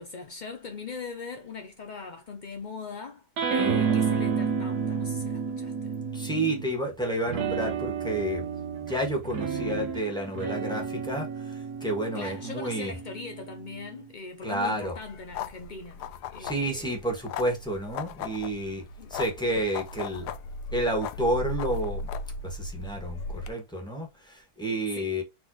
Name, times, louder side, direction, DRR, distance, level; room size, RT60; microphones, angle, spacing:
voice 1, 0.0-3.2 3.5-6.0 12.1-16.0 16.3-17.0 19.0-19.2 24.9-25.1, left 4 dB, 65° left, 0.4 m, -40 dB
sound 1, 3.4-6.7 7.3-14.0, right 6 dB, 75° right, 1.6 m, -31 dB
voice 2, 6.1-8.5 8.9-12.9 14.4-14.9 16.4-18.8 19.1-20.3 20.7-22.1 22.4-25.2, right 1 dB, 5° left, 1.4 m, -30 dB
sound 2, 14.8-23.5, left 4 dB, 85° left, 1.2 m, -37 dB
4.4 x 3.7 x 2.9 m
omnidirectional pair, 1.7 m